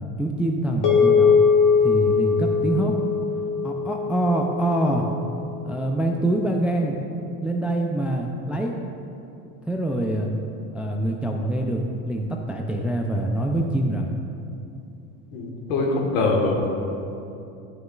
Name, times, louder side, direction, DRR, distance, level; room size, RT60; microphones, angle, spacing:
voice 1, 0.2-1.4 1.8-2.9 3.6-5.1 5.6-7.0 7.4-8.8 9.7-10.3 10.7-14.1, right 1 dB, 5° right, 1 dB, 0.3 m, -25 dB
sound 1, 0.8-5.3, left 5 dB, 50° left, 1.6 m, -21 dB
voice 2, 15.3-16.7, left 3 dB, 75° left, 0 dB, 1.5 m, -23 dB
11.5 x 6.3 x 2.4 m, 2.7 s
supercardioid pair, 100°, 43 cm